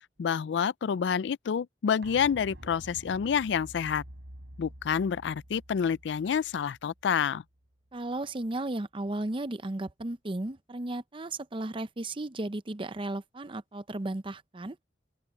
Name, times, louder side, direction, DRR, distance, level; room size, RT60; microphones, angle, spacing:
voice 1, 0.2-4.0 4.6-7.4, left 7 dB, 80° left, 0.4 m, -28 dB
sound 1, 2.0-7.7 8.0-8.1, right 1 dB, 90° right, 4.2 m, -49 dB
voice 2, 7.9-14.8, right 2 dB, 30° right, 0.6 m, -35 dB
open air
head